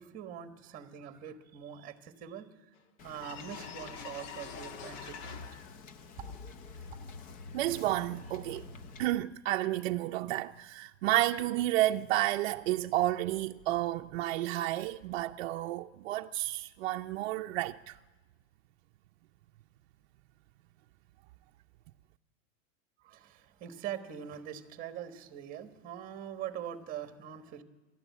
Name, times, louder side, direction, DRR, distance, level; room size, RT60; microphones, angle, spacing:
voice 1, 0.0-2.5 3.0-5.5 23.0-27.6, right 9 dB, 20° right, 1.3 m, -43 dB
sound 1, 2.8-2.9 3.1-5.8 6.1-9.2, left 5 dB, 50° left, 1.8 m, -46 dB
Wind / Boat Water vehicle, 3.0-9.1, left 5 dB, 20° left, 0.6 m, -52 dB
voice 2, 7.5-8.6 9.0-18.0, right 15 dB, 55° right, 0.6 m, -31 dB
26.5 x 12.0 x 8.3 m
supercardioid pair, 160°, 39 cm